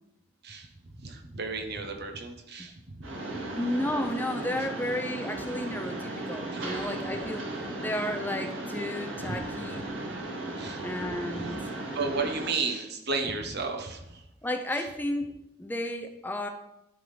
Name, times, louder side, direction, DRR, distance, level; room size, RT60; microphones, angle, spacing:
voice 1, 1.0-2.7 6.5-6.6 9.3-9.4 10.6-10.8 11.9-14.0, right 4 dB, 60° right, 5 dB, 1.1 m, -32 dB
Mechanisms, 3.0-12.5, right 2 dB, 80° right, 1.8 m, -36 dB
voice 2, 3.5-7.4 7.8-9.9 10.8-11.6 14.4-16.5, left 1 dB, 10° left, 5 dB, 0.6 m, -33 dB
11.5 x 3.9 x 5.1 m, 0.86 s
head